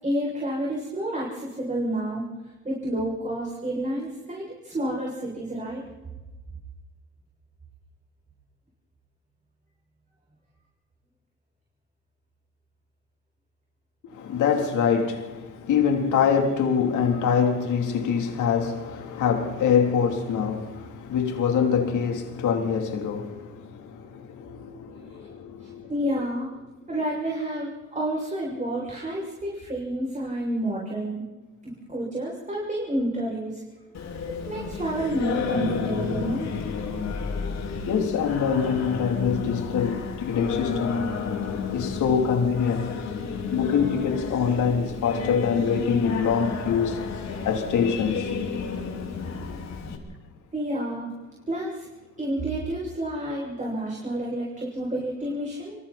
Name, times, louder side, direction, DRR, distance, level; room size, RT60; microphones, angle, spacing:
voice 1, 0.0-2.2 2.6-5.8 25.6-26.5 26.9-31.2 31.6-33.6 34.5-36.5 50.5-51.1 51.5-51.9 52.2-55.7, right 1 dB, 25° right, 7.3 m, -29 dB
voice 2, 14.1-25.9 37.8-41.0 41.4-42.9 43.5-47.0 47.5-48.3, left 7 dB, 80° left, 3.7 m, -25 dB
Singing, 33.9-50.0, left 5 dB, 65° left, 4.6 m, -31 dB
26.5 x 24.5 x 4.4 m
cardioid pair, 90°, 30 cm